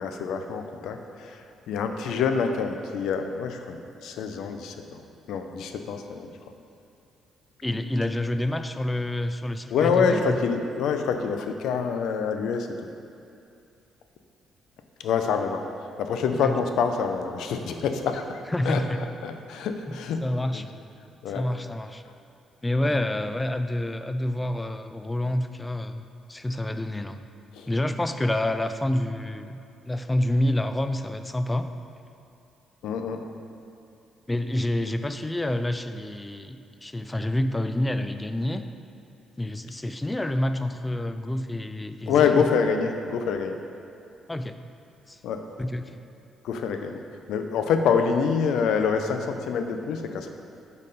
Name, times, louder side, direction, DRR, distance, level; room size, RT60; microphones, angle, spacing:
voice 1, 0.0-5.0 5.3-6.3 9.7-12.7 15.0-15.6 16.0-18.8 19.2-20.2 20.5-20.6 21.2-21.4 27.5-27.7 32.8-33.2 42.1-43.6 45.2-45.4 46.4-47.0 47.3-50.3, left 6 dB, 80° left, 6 dB, 0.4 m, -26 dB
voice 2, 7.6-10.4 16.4-16.6 18.5-19.0 19.9-20.7 21.3-22.0 22.6-27.2 27.7-29.6 29.8-31.7 34.3-38.6 39.4-42.4 44.3-44.6 45.1-45.2 45.6-45.9, left 1 dB, 15° left, 9 dB, 0.3 m, -28 dB
5.4 x 4.1 x 5.2 m, 2.6 s
cardioid pair, 90°, 0 cm